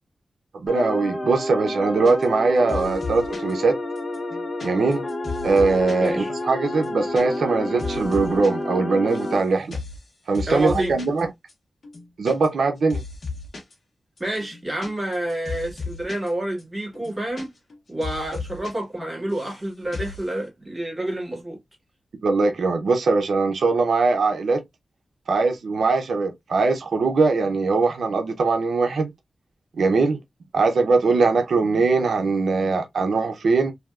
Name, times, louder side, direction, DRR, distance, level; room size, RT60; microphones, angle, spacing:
voice 1, 0.5-3.8 4.6-5.0 5.4-9.8 10.3-11.3 12.2-13.0 22.2-24.6 25.3-29.1 29.8-30.2 30.5-33.7, right 3 dB, 80° right, 0.5 m, -21 dB
sound 1, 0.7-9.4, left 1 dB, 40° left, 0.8 m, -29 dB
sound 2, 2.0-2.4 2.7-3.5 4.0-6.1 6.4-6.5 6.7-7.2 7.5-8.5 8.8-9.4 9.7-10.0 10.3-11.2 11.5-11.6 11.8-12.6 12.9-13.7 14.2-16.3 16.6-16.7 16.9-17.7 18.0-18.7 19.0-19.6 19.9-20.2, left 4 dB, 60° left, 1.2 m, -35 dB
voice 2, 6.0-6.3 10.5-11.0 14.2-17.5 17.9-21.6, right 1 dB, 10° right, 2.0 m, -28 dB
3.3 x 2.7 x 2.3 m
wide cardioid pair, 115°, 0 cm